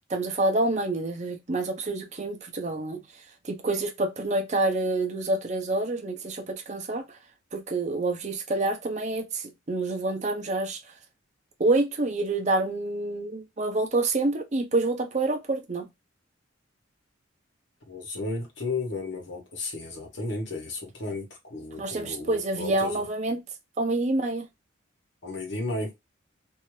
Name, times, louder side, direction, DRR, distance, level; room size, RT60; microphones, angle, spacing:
voice 1, 0.1-3.0 3.4-7.2 7.5-10.8 11.6-15.9 21.8-23.4 23.8-24.5, right 2 dB, 35° right, 0.6 m, -27 dB
voice 2, 17.9-23.0 25.2-25.9, left 2 dB, 65° left, 1.2 m, -34 dB
2.7 x 2.4 x 3.1 m
head